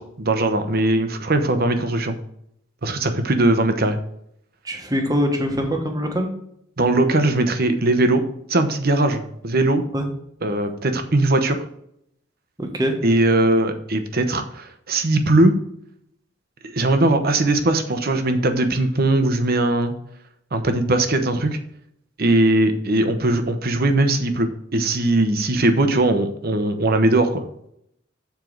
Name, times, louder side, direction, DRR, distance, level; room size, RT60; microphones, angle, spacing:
voice 1, 0.0-2.2 2.8-4.0 6.8-8.2 8.5-9.8 10.4-11.6 13.0-15.6 16.6-19.9 20.5-21.6 22.2-27.4, right 2 dB, 50° right, 8 dB, 0.9 m, -20 dB
voice 2, 4.6-6.3 9.9-10.0 12.6-13.0, equal, 20° right, 3 dB, 1.3 m, -23 dB
7.1 x 4.6 x 6.2 m, 0.73 s
head